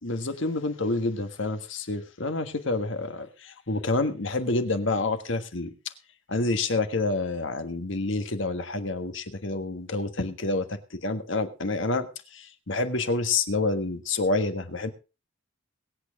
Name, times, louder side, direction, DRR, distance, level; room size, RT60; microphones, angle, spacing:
voice 1, 0.0-5.7 6.3-14.9, left 2 dB, 65° left, 9 dB, 1.5 m, -28 dB
22.0 x 8.8 x 3.6 m, 0.32 s
head